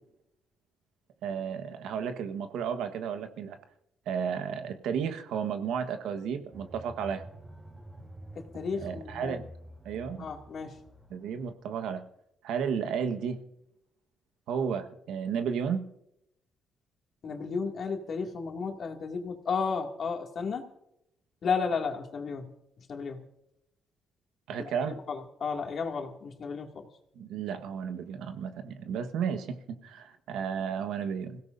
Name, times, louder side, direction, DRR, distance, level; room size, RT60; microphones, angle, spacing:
voice 1, 1.2-3.6 4.1-7.3 8.8-9.5 9.8-10.3 11.1-12.0 12.4-13.4 14.5-15.8 24.5-25.0 27.1-31.4, right 7 dB, 85° right, 8 dB, 1.3 m, -33 dB
sound 1, 6.5-11.5, right 1 dB, 15° right, 4.1 m, -48 dB
voice 2, 8.3-9.4 10.2-10.8 17.2-20.7 21.4-22.5 22.8-23.2 24.6-26.9, left 5 dB, 55° left, 2 dB, 2.3 m, -33 dB
26.5 x 17.0 x 2.6 m, 0.81 s
cardioid pair, 90°, 0 cm